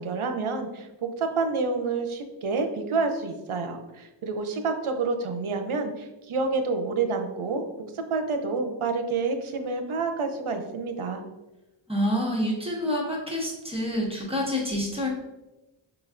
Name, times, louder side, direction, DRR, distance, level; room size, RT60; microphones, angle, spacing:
voice 1, 0.0-7.6 7.9-11.2, right 4 dB, 85° right, 6 dB, 0.6 m, -28 dB
voice 2, 11.9-15.1, equal, 10° right, -3 dB, 1.2 m, -27 dB
4.9 x 3.1 x 2.5 m, 1.0 s
wide cardioid pair, 50°, 49 cm